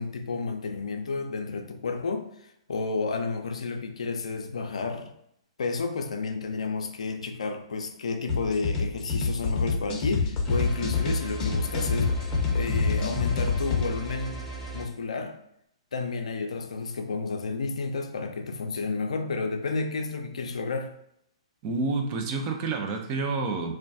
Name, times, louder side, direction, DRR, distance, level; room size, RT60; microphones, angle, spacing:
voice 1, 0.0-5.1 5.6-14.4 14.7-15.4 15.9-20.9, left 4 dB, 75° left, 5 dB, 0.4 m, -31 dB
sound 1, 8.3-13.8, left 4 dB, 20° left, 0.6 m, -27 dB
sound 2, 10.4-14.8, right 3 dB, 15° right, 0.8 m, -37 dB
voice 2, 21.6-23.7, right 3 dB, 30° right, 3 dB, 0.4 m, -29 dB
2.2 x 2.1 x 2.6 m, 0.74 s
hypercardioid pair, 130°, 3 cm